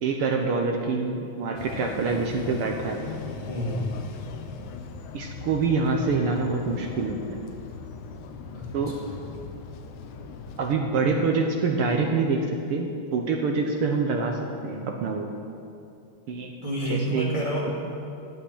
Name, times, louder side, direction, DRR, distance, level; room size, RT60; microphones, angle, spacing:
voice 1, 0.0-3.0 5.1-7.4 8.7-9.0 10.6-15.3 16.3-16.6 16.9-17.3, right 4 dB, 65° right, 2 dB, 1.4 m, -26 dB
sound 1, 1.5-10.8, left 4 dB, 80° left, 2.2 m, -39 dB
voice 2, 3.4-4.0 8.5-8.9 16.6-17.7, equal, 15° right, -5 dB, 1.8 m, -29 dB
15.0 x 5.8 x 9.9 m, 2.6 s
omnidirectional pair, 3.5 m